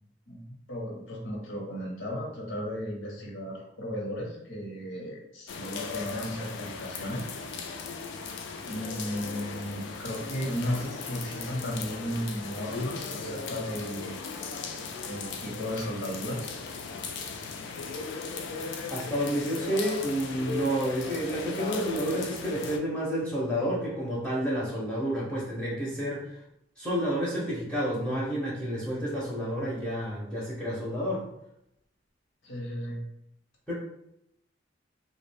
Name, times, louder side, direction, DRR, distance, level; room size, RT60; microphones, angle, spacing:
voice 1, 0.3-7.3 8.6-14.2 15.1-16.5 32.4-33.0, equal, 80° left, -2 dB, 0.8 m, -35 dB
sound 1, 5.5-22.8, left 4 dB, 65° left, 0.3 m, -37 dB
voice 2, 18.9-26.4 26.8-31.3 33.7-33.8, equal, 5° left, -7 dB, 0.5 m, -30 dB
2.3 x 2.1 x 3.2 m, 0.78 s
head